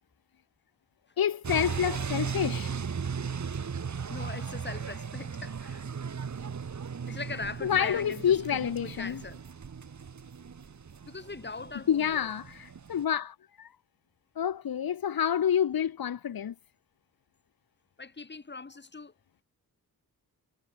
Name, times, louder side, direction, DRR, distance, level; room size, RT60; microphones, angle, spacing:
voice 1, 1.2-2.7 7.6-9.2 11.9-13.7 14.4-16.5, left 9 dB, 70° left, 2.0 m, -28 dB
sound 1, 1.4-13.0, right 6 dB, 50° right, 4.9 m, -37 dB
voice 2, 4.1-5.9 7.1-9.4 11.0-12.3 18.0-19.1, left 4 dB, 30° left, 7.9 m, -41 dB
wide cardioid pair, 145°, 36 cm